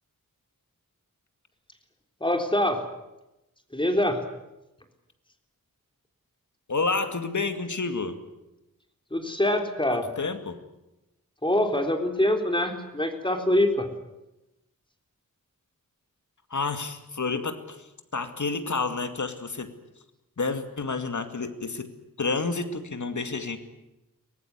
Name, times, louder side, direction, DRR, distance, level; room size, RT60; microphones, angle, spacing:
voice 1, 2.2-2.8 3.7-4.2 9.1-10.1 11.4-13.9, left 1 dB, 15° left, 5 dB, 3.6 m, -24 dB
voice 2, 6.7-8.2 10.2-10.6 16.5-17.8 18.1-19.7 20.4-21.9 22.2-23.6, left 4 dB, 60° left, 8 dB, 2.4 m, -29 dB
24.0 x 18.0 x 9.7 m, 0.96 s
wide cardioid pair, 75°, 33 cm